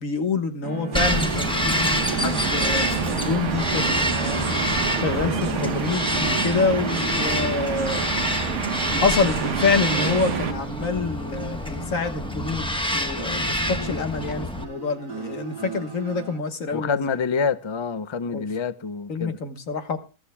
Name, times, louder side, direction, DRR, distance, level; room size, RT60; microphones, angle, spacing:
voice 1, 0.0-4.4 5.0-8.1 9.0-17.1 18.3-18.4 19.1-20.0, left 4 dB, 60° left, 1.7 m, -27 dB
sound 1, 0.6-16.4, right 4 dB, 30° right, 2.1 m, -36 dB
Bird vocalization bird call bird song, 0.9-14.6, left 1 dB, 5° left, 0.9 m, -27 dB
sound 2, 0.9-10.5, right 7 dB, 60° right, 1.1 m, -29 dB
voice 2, 5.3-5.8 7.3-7.5 16.7-19.4, left 5 dB, 45° left, 0.3 m, -27 dB
21.5 x 13.0 x 2.2 m
omnidirectional pair, 1.6 m